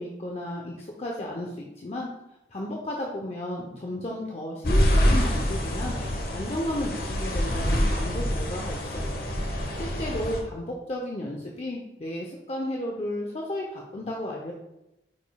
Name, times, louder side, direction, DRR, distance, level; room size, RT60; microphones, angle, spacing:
voice 1, 0.0-2.1 2.5-5.9 6.3-9.2 9.7-14.5, left 1 dB, 35° left, -1 dB, 0.7 m, -33 dB
sound 1, 4.6-10.4, equal, 55° left, 1.1 m, -26 dB
8.2 x 5.2 x 2.3 m, 0.90 s
head